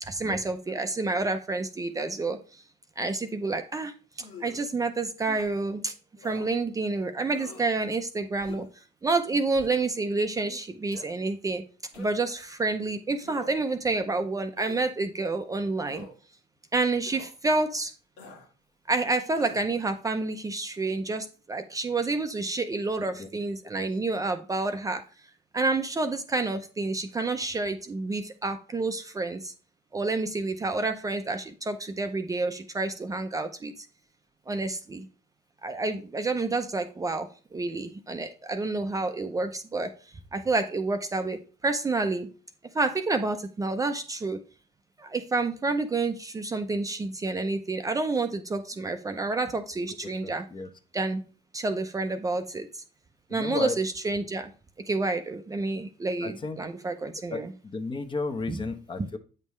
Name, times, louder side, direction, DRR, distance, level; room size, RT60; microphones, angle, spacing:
voice 1, 0.0-2.6 3.0-5.9 6.2-8.7 9.0-11.6 11.9-16.1 16.7-17.9 18.9-25.0 25.5-29.5 29.9-33.9 34.5-35.1 35.6-39.9 40.3-42.3 42.7-44.4 45.0-50.5 50.9-51.2 51.5-52.8 53.3-54.5 54.9-57.5 58.5-58.6, right 3 dB, 20° right, 0.6 m, -29 dB
sound 1, 4.2-4.7 5.2-5.5 6.2-6.5 7.3-7.7 8.4-8.8 9.5-9.9 10.9-11.1 11.9-12.3 13.2-13.7 14.6-14.9 15.9-16.1 17.1-17.3 18.2-18.5 19.4-19.7, left 3 dB, 85° left, 1.9 m, -45 dB
voice 2, 50.2-50.7 53.3-53.8 56.2-56.6 57.3-59.2, left 3 dB, 30° left, 0.9 m, -34 dB
8.3 x 5.4 x 3.2 m
cardioid pair, 110°, 17 cm